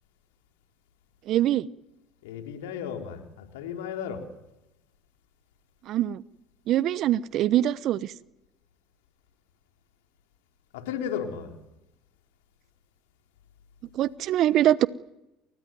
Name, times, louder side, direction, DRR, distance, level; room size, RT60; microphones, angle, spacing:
voice 1, 1.3-1.7 5.9-6.2 6.7-8.0 13.9-14.9, right 12 dB, 55° right, 19 dB, 0.9 m, -23 dB
voice 2, 2.2-4.2 10.7-11.5, left 8 dB, 75° left, 4 dB, 4.3 m, -34 dB
29.0 x 18.5 x 9.4 m, 0.91 s
hypercardioid pair, 80°, 0 cm